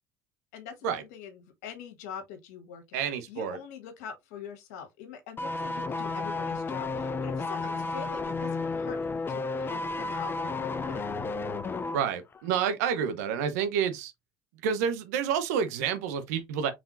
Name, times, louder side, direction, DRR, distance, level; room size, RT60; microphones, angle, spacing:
voice 1, 0.5-9.0 9.3-11.1, left 7 dB, 80° left, 1.4 m, -44 dB
voice 2, 2.9-3.6 11.9-14.1 14.6-16.7, right 7 dB, 80° right, 0.8 m, -29 dB
sound 1, 5.4-12.1 12.3-12.5, left 3 dB, 25° left, 0.6 m, -32 dB
4.9 x 3.6 x 2.6 m
hypercardioid pair, 75°, 9 cm